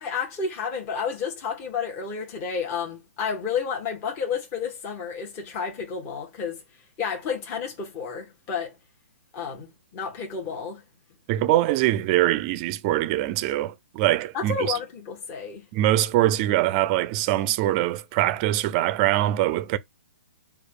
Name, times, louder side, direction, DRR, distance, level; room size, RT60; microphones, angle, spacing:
voice 1, 0.0-6.6 7.0-8.7 9.3-10.8 14.3-15.6, left 6 dB, 30° left, 1.3 m, -31 dB
voice 2, 11.3-14.8 15.7-19.8, right 14 dB, 35° right, 0.4 m, -23 dB
4.6 x 2.4 x 4.9 m
hypercardioid pair, 135°, 8 cm